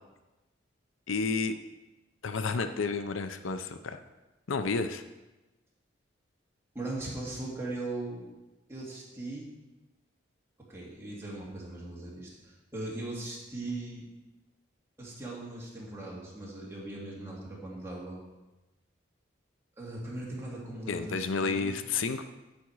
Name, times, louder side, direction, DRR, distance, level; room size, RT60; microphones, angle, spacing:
voice 1, 1.1-1.5 2.2-4.0 4.5-5.0 20.9-22.3, left 4 dB, 85° left, 9 dB, 0.6 m, -31 dB
voice 2, 6.7-8.3 8.7-9.5 10.7-14.0 15.0-18.2 19.8-21.8, right 2 dB, 15° right, -5 dB, 2.2 m, -39 dB
8.6 x 8.3 x 4.7 m, 1.1 s
head